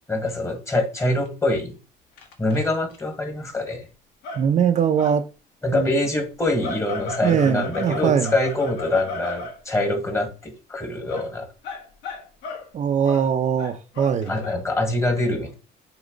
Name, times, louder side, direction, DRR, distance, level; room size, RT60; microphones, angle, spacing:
voice 1, 0.1-1.7 2.4-3.9 5.6-11.5 14.3-15.5, left 2 dB, 15° left, 1.9 m, -24 dB
sound 1, 1.3-1.4 2.2-3.0 4.2-4.5 5.0-5.2 6.6-9.6 11.1-11.3 11.6-12.7 13.1-13.3 13.6-14.5, left 2 dB, 90° left, 1.5 m, -35 dB
voice 2, 4.3-5.2 5.7-5.9 7.2-8.3 12.7-14.3, right 7 dB, 45° right, 0.7 m, -21 dB
7.1 x 3.1 x 5.1 m
cardioid pair, 110°, 17 cm